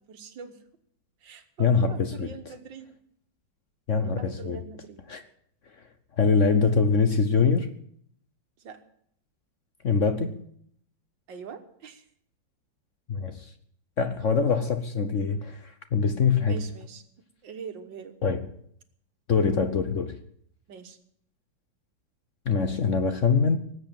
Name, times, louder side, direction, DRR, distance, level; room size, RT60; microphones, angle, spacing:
voice 1, 0.1-0.6 1.2-3.0 4.0-5.0 8.6-8.8 11.3-12.0 16.5-17.0 17.4-18.2 20.7-21.0, right 6 dB, 75° right, 2.0 m, -43 dB
voice 2, 1.6-2.3 3.9-4.6 5.1-5.2 6.2-7.7 9.8-10.4 13.1-13.5 14.0-16.6 18.2-18.4 19.3-20.2 22.5-23.6, left 5 dB, 50° left, 1.1 m, -24 dB
18.5 x 8.1 x 9.0 m
omnidirectional pair, 2.0 m